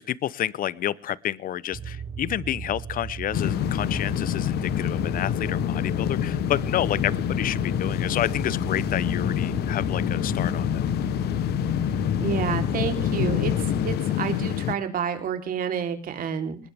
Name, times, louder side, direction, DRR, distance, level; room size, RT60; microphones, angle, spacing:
voice 1, 0.0-10.8, left 12 dB, 55° left, 21 dB, 0.8 m, -29 dB
sound 1, 1.7-14.0, right 7 dB, 30° right, 1.1 m, -36 dB
sound 2, 3.3-14.7, left 12 dB, 75° left, 1.1 m, -26 dB
voice 2, 12.2-13.5 13.8-16.6, right 8 dB, 55° right, 6 dB, 3.7 m, -29 dB
20.5 x 20.0 x 3.6 m, 0.39 s
cardioid pair, 110°, 17 cm